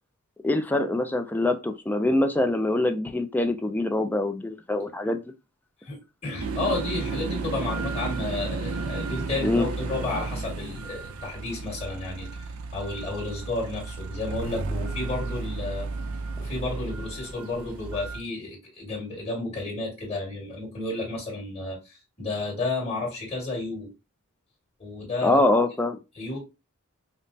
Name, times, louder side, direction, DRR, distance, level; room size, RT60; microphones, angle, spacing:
voice 1, 0.4-5.2 9.4-9.7 25.2-26.0, left 2 dB, 10° left, 7 dB, 0.3 m, -24 dB
voice 2, 5.8-15.9 16.4-23.9 24.8-25.4 26.2-26.4, left 2 dB, 30° left, -4 dB, 1.8 m, -32 dB
sound 1, 6.4-18.2, right 3 dB, 70° right, 0.5 m, -33 dB
5.1 x 2.0 x 2.7 m, 0.27 s
head